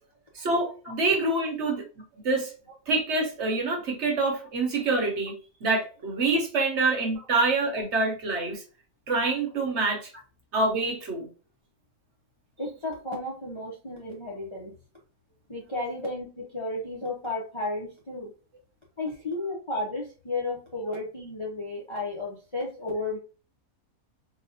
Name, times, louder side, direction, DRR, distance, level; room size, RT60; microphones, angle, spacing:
voice 1, 0.3-1.8 2.2-2.5 2.9-5.3 5.6-8.6 9.1-10.1 10.5-11.3, right 3 dB, 55° right, 1 dB, 1.1 m, -26 dB
voice 2, 12.6-14.7 15.5-18.3 19.0-23.2, left 2 dB, 30° left, -3 dB, 0.5 m, -33 dB
3.9 x 2.3 x 2.7 m, 0.36 s
omnidirectional pair, 1.5 m